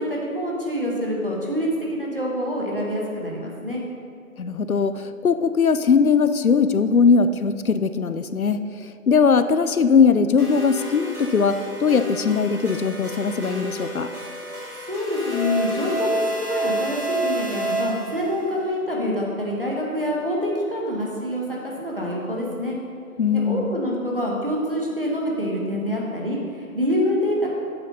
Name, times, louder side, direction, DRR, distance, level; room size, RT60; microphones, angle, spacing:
voice 1, 0.0-3.8 14.8-22.8 23.3-27.5, equal, 40° right, -3 dB, 1.3 m, -26 dB
voice 2, 4.4-8.6 9.1-14.1 23.2-23.8, left 5 dB, 70° left, 11 dB, 0.6 m, -20 dB
sound 1, 10.4-18.5, right 1 dB, 80° right, 2.2 m, -29 dB
8.0 x 7.3 x 4.0 m, 2.3 s
figure-of-eight pair, 180°, 44 cm